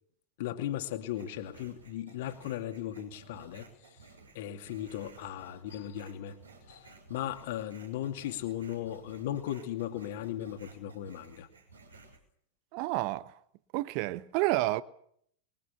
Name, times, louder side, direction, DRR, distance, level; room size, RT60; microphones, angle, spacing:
voice 1, 0.4-3.7 4.3-6.4 6.7-11.5, left 11 dB, 55° left, 2.5 m, -37 dB
sound 1, 1.1-12.2, right 3 dB, 75° right, 6.3 m, -56 dB
voice 2, 12.7-13.3 13.7-14.8, right 18 dB, 45° right, 1.1 m, -29 dB
24.5 x 22.5 x 6.9 m
figure-of-eight pair, 90°, 0 cm